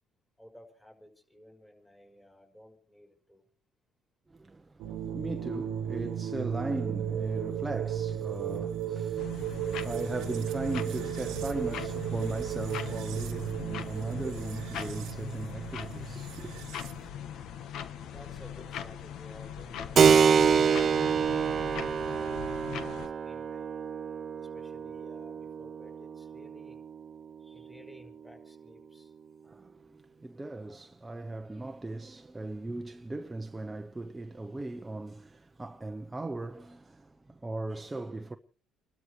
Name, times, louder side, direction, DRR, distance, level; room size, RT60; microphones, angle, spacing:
voice 1, 0.4-3.4 9.1-9.2 18.0-23.7 24.3-26.8 27.4-29.1, equal, 10° left, 5.8 m, -54 dB
voice 2, 4.3-16.6 29.4-38.4, right 2 dB, 15° right, 0.9 m, -38 dB
sound 1, 4.8-17.1, right 9 dB, 75° right, 1.3 m, -35 dB
sound 2, 9.2-23.1, left 8 dB, 65° left, 1.3 m, -41 dB
Keyboard (musical), 20.0-28.2, right 6 dB, 40° right, 0.7 m, -27 dB
29.0 x 13.0 x 3.3 m
cardioid pair, 105°, 0 cm